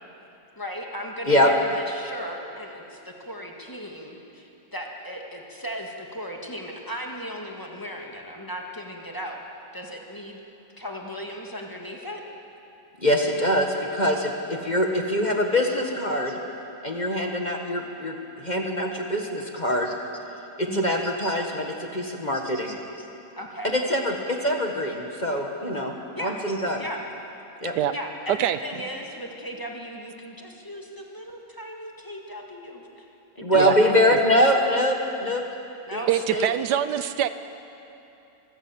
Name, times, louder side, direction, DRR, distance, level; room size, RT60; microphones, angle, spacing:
voice 1, 0.6-9.4 9.7-10.4 10.8-12.2 20.7-21.1 23.4-23.7 26.1-26.4 26.8-27.0 27.9-33.1 33.3-34.2 35.9-36.1, equal, 10° left, 0 dB, 2.0 m, -37 dB
voice 2, 13.0-16.4 16.8-19.9 20.6-22.8 23.7-25.9 26.2-26.8 27.6-27.7 33.4-35.4 35.9-36.0 36.3-36.5, equal, 25° left, 2 dB, 1.4 m, -24 dB
voice 3, 36.1-37.3, right 10 dB, 80° right, 12 dB, 1.2 m, -23 dB
25.0 x 14.5 x 7.4 m, 2.8 s
omnidirectional pair, 1.8 m